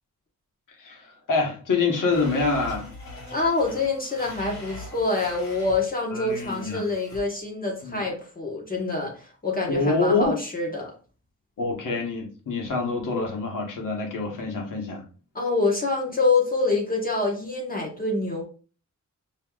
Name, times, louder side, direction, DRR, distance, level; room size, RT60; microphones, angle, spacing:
voice 1, 0.8-2.9 6.1-6.8 7.8-8.0 9.7-10.3 11.6-15.0, left 3 dB, 85° left, 1 dB, 1.2 m, -26 dB
Domestic sounds home sounds, 2.1-5.9 6.2-7.2, left 1 dB, 60° left, 1.8 m, -41 dB
voice 2, 3.3-10.9 15.3-18.4, left 3 dB, 30° left, -1 dB, 1.2 m, -26 dB
5.5 x 2.9 x 2.3 m, 0.37 s
wide cardioid pair, 130°, 31 cm